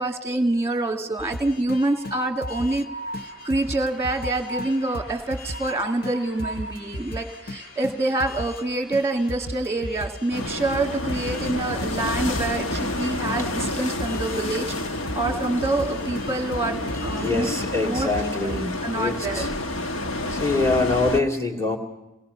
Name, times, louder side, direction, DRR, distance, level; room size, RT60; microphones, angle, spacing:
voice 1, 0.0-2.9 3.4-17.5 17.8-19.5, right 2 dB, 15° right, 4 dB, 1.9 m, -26 dB
sound 1, 1.2-2.8 3.1-5.7 6.0-6.1 6.4-8.6 8.9-11.5 11.8-11.9 12.2-14.4 14.7-17.3 17.6-17.7 18.0-18.6, left 1 dB, 50° left, 0.8 m, -36 dB
Train, 1.4-19.2, right 1 dB, 70° left, 4.3 m, -43 dB
sound 2, 10.3-21.2, left 1 dB, 90° left, 1.2 m, -29 dB
voice 2, 17.2-19.5 20.3-21.8, left 3 dB, 15° left, 2 dB, 2.3 m, -24 dB
28.5 x 20.0 x 5.6 m, 0.96 s
head